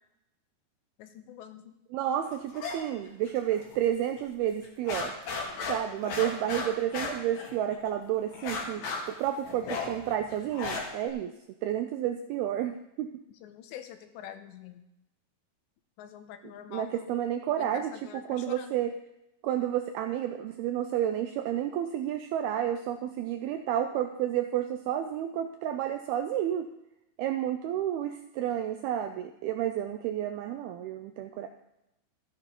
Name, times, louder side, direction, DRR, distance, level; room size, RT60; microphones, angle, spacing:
voice 1, 1.0-1.8 13.4-14.8 16.0-17.1 17.6-18.7, left 10 dB, 80° left, 8 dB, 3.1 m, -45 dB
voice 2, 1.9-5.1 5.7-11.3 11.6-13.1 16.7-18.9 19.4-26.7 27.2-31.5, right 11 dB, 85° right, 6 dB, 2.2 m, -31 dB
sound 1, 2.5-2.8 3.1-3.9 4.2-4.3 4.6-7.9 8.3-11.1, left 4 dB, 65° left, 3.6 m, -35 dB
13.5 x 9.1 x 5.3 m, 0.87 s
omnidirectional pair, 5.1 m